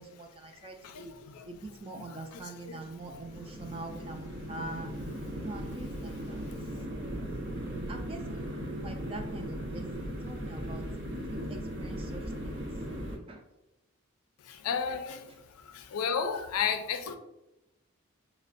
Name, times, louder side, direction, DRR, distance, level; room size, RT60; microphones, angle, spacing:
voice 1, 0.0-1.1 1.5-4.9 5.4-6.5 6.7-7.3 7.9-12.7 13.3-13.4, right 2 dB, 25° right, 0.3 m, -44 dB
voice 2, 0.8-1.4 2.0-2.2 2.6-2.7 14.6-15.3 15.7-17.2, left 6 dB, 90° left, 0.4 m, -32 dB
sound 1, 2.6-13.2, equal, 55° right, 0.7 m, -38 dB
5.4 x 2.1 x 2.4 m
head